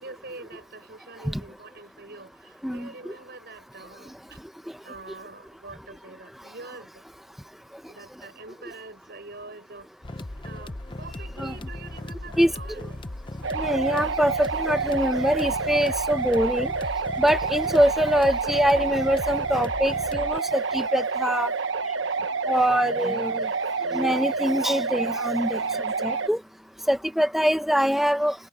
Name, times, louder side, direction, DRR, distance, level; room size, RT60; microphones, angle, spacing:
voice 1, 0.0-4.4 4.8-7.0 7.9-9.9 10.4-13.1 17.6-17.8 22.5-22.8, right 3 dB, 55° right, 5.6 m, -44 dB
sound 1, 10.0-20.4, left 1 dB, 25° left, 0.7 m, -37 dB
sound 2, 13.4-26.3, right 4 dB, 75° right, 1.2 m, -28 dB
voice 2, 13.5-16.7 17.2-21.5 22.5-23.5 23.9-25.6 26.0-26.4 26.9-28.3, equal, ahead, 1.0 m, -24 dB
head